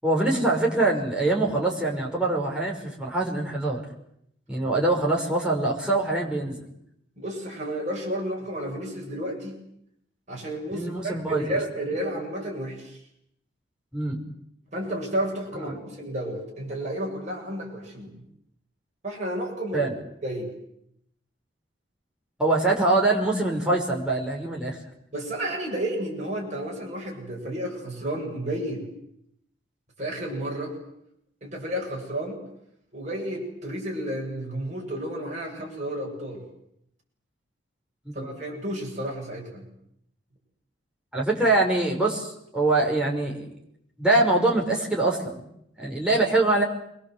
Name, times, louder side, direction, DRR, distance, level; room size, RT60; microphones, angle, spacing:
voice 1, 0.0-3.8 4.5-6.6 10.7-11.6 13.9-14.2 15.7-15.8 19.7-19.9 22.4-24.8 38.1-38.2 41.1-43.5 44.0-45.4 45.8-46.6, right 2 dB, 5° right, -3 dB, 5.8 m, -24 dB
voice 2, 7.2-9.6 10.3-13.0 14.7-18.2 19.0-19.9 20.2-20.5 25.1-28.8 30.0-30.8 31.4-32.4 32.9-36.4 38.1-39.6, right 1 dB, 40° right, -2 dB, 8.0 m, -32 dB
27.5 x 23.0 x 8.0 m, 0.74 s
head